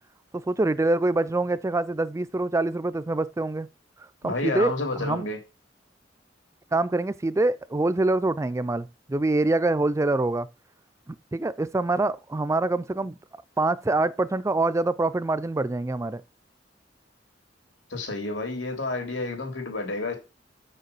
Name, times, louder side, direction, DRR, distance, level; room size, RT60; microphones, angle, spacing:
voice 1, 0.3-3.7 4.0-5.3 6.7-10.5 11.1-13.2 13.6-16.2, right 2 dB, 15° right, 0.4 m, -25 dB
voice 2, 4.2-5.4 17.9-20.1, left 2 dB, 85° left, 3.3 m, -30 dB
6.6 x 6.5 x 6.9 m
head